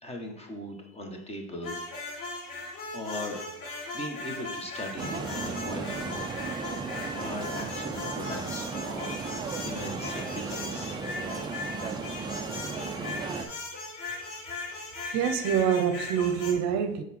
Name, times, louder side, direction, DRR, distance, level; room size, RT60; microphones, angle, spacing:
voice 1, 0.0-2.4 2.9-3.4 3.9-6.3 6.7-11.0 14.2-14.9, left 1 dB, 20° left, 3 dB, 1.2 m, -40 dB
sound 1, 1.6-16.5, left 3 dB, 65° left, 2.0 m, -38 dB
sound 2, 5.0-13.5, right 5 dB, 15° right, 0.4 m, -35 dB
voice 2, 15.1-17.0, right 8 dB, 55° right, 9 dB, 0.7 m, -26 dB
6.8 x 4.7 x 4.2 m, 0.78 s
supercardioid pair, 130°, 34 cm